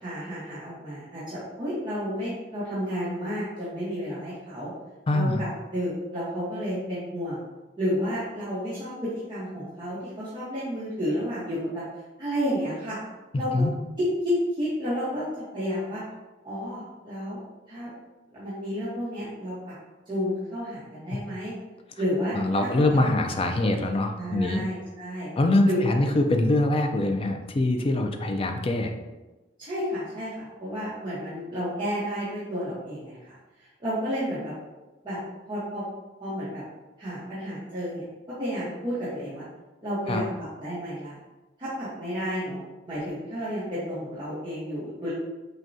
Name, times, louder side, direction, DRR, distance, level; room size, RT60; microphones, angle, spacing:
voice 1, 0.0-4.7 5.1-7.4 7.8-11.8 12.2-13.0 13.4-13.5 14.0-15.2 15.5-16.0 16.4-17.4 17.7-17.9 18.3-19.7 20.1-21.5 22.0-23.1 24.2-25.3 25.6-26.0 29.6-33.4 33.8-34.5 35.0-35.2 35.5-35.8 36.2-36.6 37.0-38.0 38.4-39.4 39.8-41.2 41.6-45.1, equal, 25° right, -12 dB, 1.0 m, -31 dB
voice 2, 5.1-5.5 13.3-13.7 22.3-24.6 25.4-28.9 40.1-40.2, left 2 dB, 30° left, 5 dB, 0.4 m, -24 dB
6.0 x 2.2 x 2.6 m, 1.1 s
head